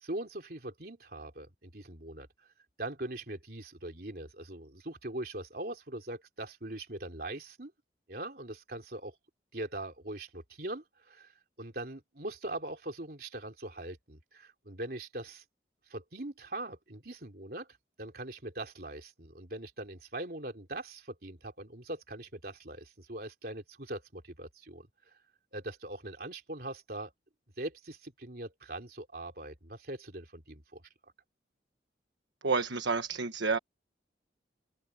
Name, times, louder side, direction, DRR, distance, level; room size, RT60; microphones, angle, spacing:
voice 1, 0.0-2.3 2.8-7.7 8.1-9.2 9.5-11.3 11.6-15.4 15.9-24.9 25.5-27.1 27.6-30.8, right 1 dB, 55° right, 3.7 m, -41 dB
voice 2, 32.4-33.6, right 4 dB, 85° right, 1.4 m, -29 dB
open air
head